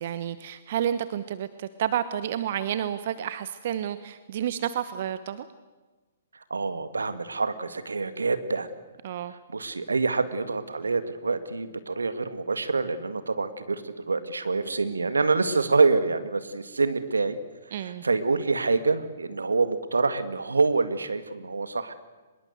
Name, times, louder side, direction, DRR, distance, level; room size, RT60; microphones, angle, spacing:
voice 1, 0.0-5.5 9.0-9.3 17.7-18.0, right 10 dB, 50° right, 13 dB, 1.1 m, -30 dB
voice 2, 6.5-8.7 9.5-17.4 18.0-22.0, right 4 dB, 80° right, 11 dB, 2.0 m, -26 dB
24.5 x 21.5 x 8.2 m, 1.3 s
figure-of-eight pair, 120°, 0 cm